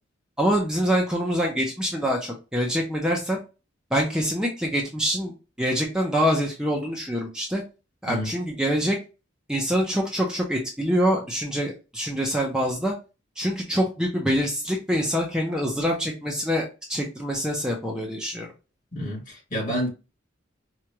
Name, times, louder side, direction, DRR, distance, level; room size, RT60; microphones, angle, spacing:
voice 1, 0.4-3.4 3.9-5.3 5.6-7.6 8.0-9.0 9.5-12.9 13.4-18.5, equal, 5° right, 0.7 m, -25 dB
voice 2, 18.9-19.9, equal, 45° left, 2.3 m, -29 dB
4.7 x 2.5 x 2.9 m
head